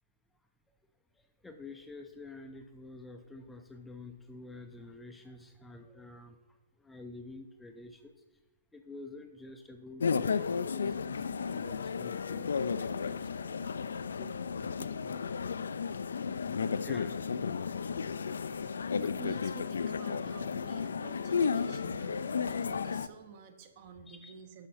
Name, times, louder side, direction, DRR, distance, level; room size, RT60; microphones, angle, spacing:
voice 1, 1.4-6.4 6.8-8.1 8.7-13.9 14.2-15.5 16.8-17.4 19.0-19.1 24.1-24.3, left 2 dB, 5° left, 5 dB, 0.5 m, -49 dB
sound 1, 10.0-23.1, left 6 dB, 70° left, 0.3 m, -33 dB
voice 2, 18.6-24.7, right 6 dB, 40° right, 7 dB, 0.9 m, -50 dB
6.5 x 5.2 x 5.7 m, 1.2 s
figure-of-eight pair, 120°, 0 cm